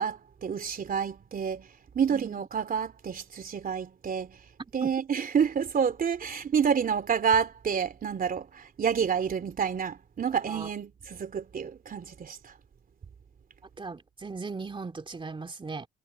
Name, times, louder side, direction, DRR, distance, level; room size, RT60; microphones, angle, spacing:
voice 1, 0.0-1.7 1.9-4.4 4.7-12.5, right 7 dB, 45° right, 3.4 m, -29 dB
voice 2, 2.1-2.5 4.8-4.9 10.4-10.7 13.8-15.9, right 4 dB, 25° right, 2.7 m, -38 dB
cardioid pair, 90°, 20 cm